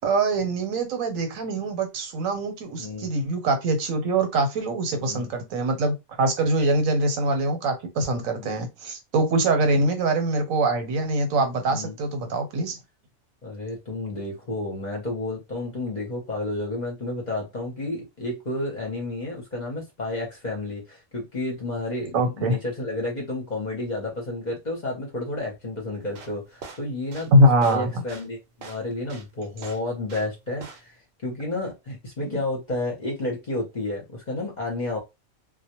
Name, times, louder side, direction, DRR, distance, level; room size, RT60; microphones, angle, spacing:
voice 1, 0.0-12.8 22.1-22.6 27.3-28.0 32.2-32.4, right 2 dB, 80° right, 1.1 m, -23 dB
voice 2, 2.8-3.1 5.0-5.3 8.3-8.6 9.7-9.8 11.7-12.0 13.4-27.3 27.6-30.9 31.2-35.0, left 2 dB, 40° left, 0.7 m, -31 dB
sound 1, 26.0-30.4 30.6-31.0, right 4 dB, 60° right, 0.8 m, -43 dB
2.1 x 2.1 x 2.8 m
omnidirectional pair, 1.4 m